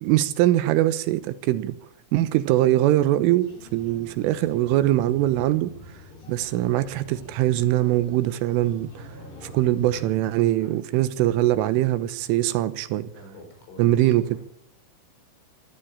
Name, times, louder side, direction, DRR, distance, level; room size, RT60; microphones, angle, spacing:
voice 1, 0.0-1.8 2.1-5.7 6.3-9.1 9.4-13.1 13.8-14.3, right 14 dB, 80° right, 3.5 m, -22 dB
sound 1, 3.4-10.1, left 2 dB, 55° left, 8.2 m, -45 dB
voice 2, 13.1-14.3, left 1 dB, 70° left, 8.3 m, -46 dB
24.0 x 13.5 x 8.8 m
omnidirectional pair, 5.8 m